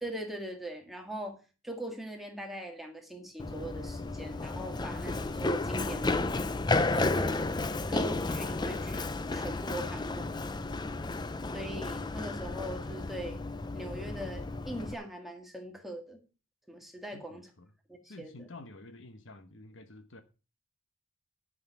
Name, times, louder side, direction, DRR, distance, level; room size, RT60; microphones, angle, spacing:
voice 1, 0.0-1.4 1.6-6.3 6.9-7.5 7.9-10.3 11.5-13.4 13.7-16.2 16.7-17.5 17.9-18.5, right 1 dB, ahead, 2.0 m, -41 dB
Run, 3.4-14.9, left 2 dB, 20° left, 0.5 m, -32 dB
voice 2, 17.1-17.7 18.0-20.2, left 2 dB, 60° left, 1.0 m, -50 dB
11.5 x 6.5 x 5.8 m
head